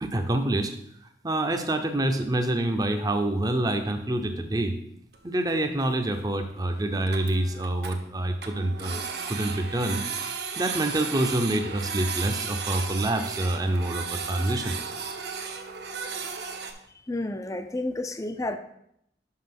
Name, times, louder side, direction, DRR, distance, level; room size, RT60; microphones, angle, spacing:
voice 1, 0.0-0.7 1.0-4.8 5.2-10.0 10.6-14.8, right 1 dB, 20° right, 6 dB, 0.7 m, -27 dB
Printer, 5.1-5.2 5.4-5.5 5.9-6.0 6.2-6.3 6.6-6.7 6.9-8.0 8.4-16.7, right 6 dB, 70° right, 0.9 m, -34 dB
voice 2, 17.1-18.6, left 2 dB, 20° left, 9 dB, 0.5 m, -30 dB
5.6 x 5.6 x 5.9 m, 0.75 s
head